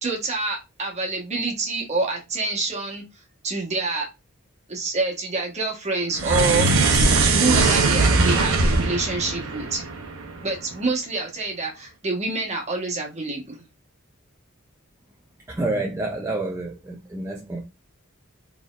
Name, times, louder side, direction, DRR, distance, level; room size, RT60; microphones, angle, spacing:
voice 1, 0.0-3.0 3.4-4.1 4.7-6.7 7.1-9.8 10.4-13.6, right 3 dB, 30° right, 1.2 m, -27 dB
sound 1, 6.1-10.6, right 3 dB, 90° right, 0.8 m, -20 dB
voice 2, 15.5-17.7, right 2 dB, 15° right, 0.4 m, -28 dB
4.1 x 3.4 x 2.4 m
head